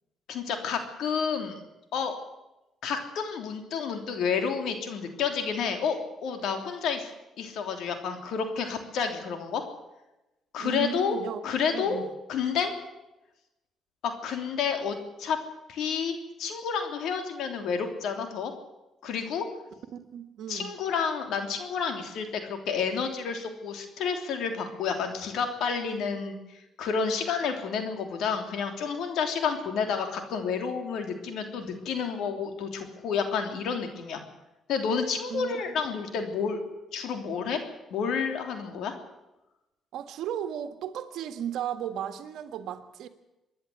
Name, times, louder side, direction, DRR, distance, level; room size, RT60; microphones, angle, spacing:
voice 1, 0.3-1.6 1.9-2.2 2.8-7.1 7.4-9.6 10.5-11.2 11.4-12.0 12.3-12.7 14.0-15.4 15.7-18.5 19.0-19.4 20.5-26.4 26.8-34.2 34.7-36.6 36.9-37.6 37.9-38.9, left 6 dB, 80° left, 6 dB, 3.2 m, -30 dB
voice 2, 10.6-11.4 11.7-12.1 19.9-20.7 35.3-35.8 39.9-43.1, right 9 dB, 80° right, 9 dB, 1.6 m, -35 dB
25.5 x 10.5 x 9.7 m, 0.96 s
cardioid pair, 90°, 0 cm